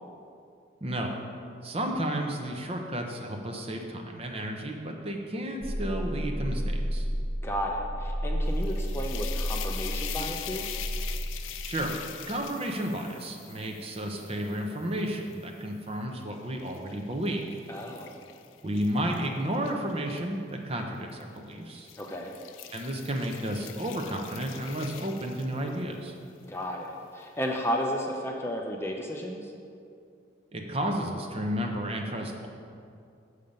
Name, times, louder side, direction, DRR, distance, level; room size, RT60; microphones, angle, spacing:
voice 1, 0.8-1.1 1.6-7.1 11.6-11.9 12.3-17.4 18.6-21.9 22.7-26.1 30.5-32.5, right 1 dB, 30° right, 2 dB, 0.7 m, -32 dB
sound 1, 5.6-11.7, equal, 65° right, 1.1 m, -31 dB
voice 2, 7.4-10.6 17.7-18.1 22.0-22.3 26.5-29.5, equal, 15° left, 0 dB, 0.5 m, -33 dB
sound 2, 8.5-15.7 16.2-20.2 21.1-21.4 21.8-25.9, left 10 dB, 90° left, 0.4 m, -43 dB
7.1 x 6.6 x 5.2 m, 2.4 s
head